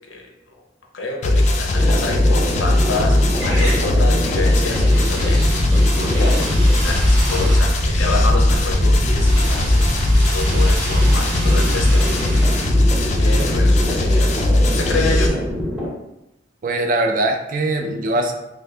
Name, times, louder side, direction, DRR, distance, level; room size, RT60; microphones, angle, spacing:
voice 1, 0.1-0.6 0.9-6.4 6.8-9.8 10.1-12.2 12.9-15.4, left 2 dB, 90° left, 0 dB, 0.7 m, -28 dB
sound 1, 1.2-15.3, left 1 dB, 40° left, 0.3 m, -18 dB
sound 2, 1.7-15.9, equal, ahead, 0.6 m, -25 dB
sound 3, 3.3-14.2, right 1 dB, 90° right, 0.9 m, -33 dB
voice 2, 16.6-18.3, right 2 dB, 45° right, 4 dB, 0.4 m, -21 dB
2.7 x 2.5 x 3.3 m, 0.90 s
head